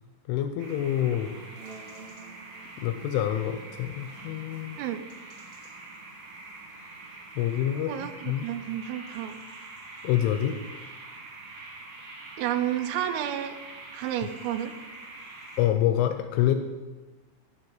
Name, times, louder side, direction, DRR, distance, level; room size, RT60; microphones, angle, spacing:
voice 1, 0.3-1.4 2.8-4.8 7.4-8.5 10.0-10.6 15.6-16.5, left 11 dB, 85° left, 8 dB, 2.9 m, -26 dB
sound 1, 0.6-15.6, right 3 dB, 60° right, 2.6 m, -45 dB
voice 2, 7.7-9.4 12.4-13.6 13.9-14.7, right 11 dB, 85° right, 9 dB, 3.3 m, -31 dB
16.0 x 6.1 x 3.8 m, 1.3 s
omnidirectional pair, 5.8 m